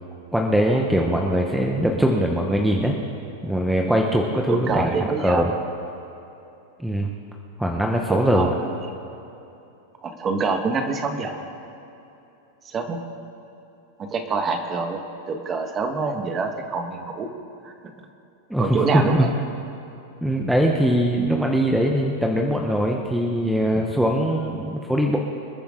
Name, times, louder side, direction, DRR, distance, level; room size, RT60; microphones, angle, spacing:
voice 1, 0.3-2.9 3.4-5.5 6.8-7.1 7.6-8.5 18.5-19.3 20.2-25.2, equal, ahead, 0 dB, 1.1 m, -21 dB
voice 2, 4.5-5.4 8.1-8.7 10.0-11.4 12.7-13.0 14.0-15.0 15.3-17.3 17.6-17.7 18.6-19.3, right 4 dB, 25° right, 5 dB, 1.6 m, -26 dB
26.5 x 9.9 x 3.9 m, 2.9 s
supercardioid pair, 135°, 0 cm